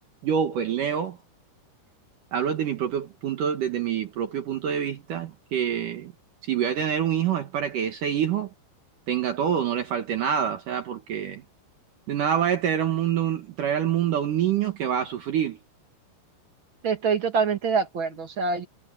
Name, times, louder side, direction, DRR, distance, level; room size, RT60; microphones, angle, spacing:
voice 1, 0.2-1.2 2.3-6.1 6.5-8.5 9.1-11.4 12.1-15.6, right 9 dB, 65° right, 2.5 m, -26 dB
voice 2, 16.8-18.7, right 5 dB, 45° right, 1.9 m, -25 dB
omnidirectional pair, 4.7 m